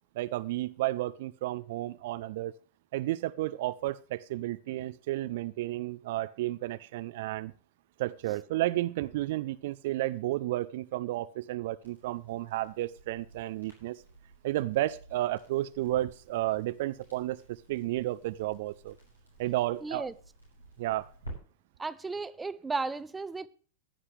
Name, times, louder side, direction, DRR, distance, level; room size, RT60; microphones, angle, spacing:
voice 1, 0.2-2.5 2.9-7.5 8.0-14.0 14.4-19.0 19.4-20.1 20.8-21.1, right 16 dB, 55° right, 0.5 m, -32 dB
Crackle, 11.8-21.3, right 1 dB, 85° left, 6.8 m, -53 dB
voice 2, 19.8-20.1 21.8-23.5, right 4 dB, 10° right, 0.7 m, -34 dB
15.0 x 11.0 x 3.3 m
figure-of-eight pair, 90°, 0 cm